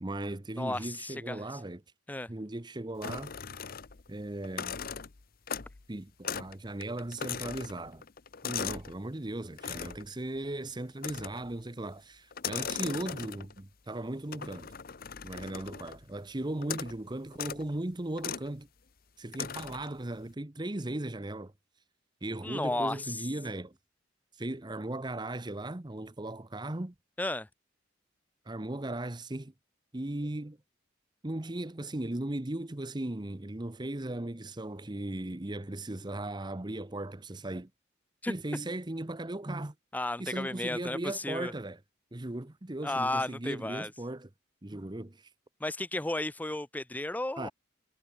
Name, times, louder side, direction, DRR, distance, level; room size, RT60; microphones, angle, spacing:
voice 1, 0.0-1.8 2.3-3.4 4.1-4.8 5.9-8.0 8.4-14.7 15.2-18.7 19.2-21.5 22.2-23.8 24.3-26.9 28.4-29.5 29.9-30.6 31.2-37.7 38.3-39.7 40.2-41.8 42.1-44.3 44.6-45.3 47.4-47.5, right 1 dB, 20° right, 0.9 m, -37 dB
voice 2, 0.6-1.6 2.1-2.3 22.4-23.2 27.2-27.5 38.2-38.3 39.9-41.5 42.8-43.9 45.6-47.5, left 2 dB, 10° left, 0.5 m, -33 dB
sound 1, 3.0-4.1 4.4-5.8 6.2-6.6 6.8-9.0 9.6-10.1 11.0-11.5 12.3-13.6 14.3-16.0 16.6-17.0 17.3-17.6 18.2-18.5 19.3-19.9, left 7 dB, 50° left, 0.9 m, -39 dB
head